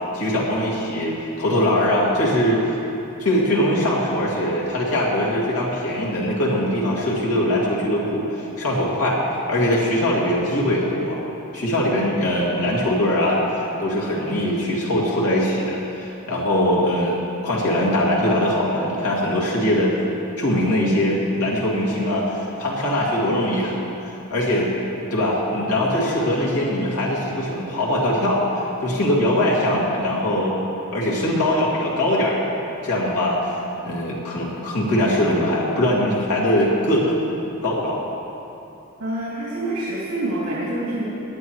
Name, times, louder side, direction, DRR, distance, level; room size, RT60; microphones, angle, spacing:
voice 1, 0.1-2.7 3.2-9.2 9.5-11.2 11.5-20.0 20.4-23.7 24.3-24.7 25.0-28.5 28.8-30.6 30.9-32.5 32.8-33.5 33.8-37.2 37.6-38.0, left 1 dB, 80° left, -5 dB, 2.5 m, -21 dB
voice 2, 39.0-41.0, right 1 dB, 80° right, -8 dB, 2.6 m, -26 dB
18.0 x 11.0 x 3.2 m, 2.9 s
head